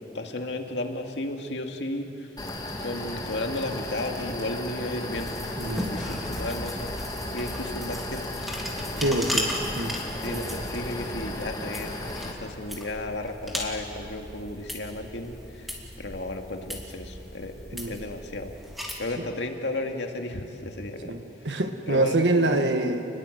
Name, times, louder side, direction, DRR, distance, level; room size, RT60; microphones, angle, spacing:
voice 1, 0.1-2.3 2.8-5.3 5.6-7.1 7.3-8.2 8.7-9.2 10.2-12.0 12.2-17.5 17.9-18.5 19.0-21.2 21.4-21.5 21.9-22.7, left 2 dB, 85° left, 3 dB, 2.1 m, -34 dB
sound 1, 2.4-12.3, left 1 dB, 20° left, 2.4 m, -35 dB
sound 2, 5.1-18.9, equal, ahead, 2.9 m, -37 dB
voice 2, 5.6-5.9 9.0-9.5 9.8-9.9 10.3-10.5 17.7-17.9 19.2-19.3 21.0-23.0, right 2 dB, 80° right, 6 dB, 1.3 m, -25 dB
28.5 x 21.0 x 7.9 m, 2.8 s
head